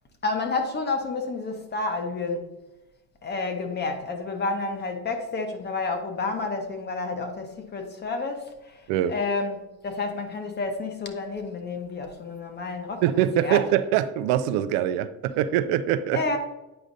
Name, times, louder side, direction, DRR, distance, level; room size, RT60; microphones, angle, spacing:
voice 1, 0.2-2.5 3.2-13.0 13.4-13.7 16.1-16.4, left 3 dB, 25° left, 0.9 m, -30 dB
voice 2, 13.0-16.2, right 11 dB, 80° right, 0.5 m, -23 dB
8.9 x 4.9 x 2.6 m
cardioid pair, 120°, 37 cm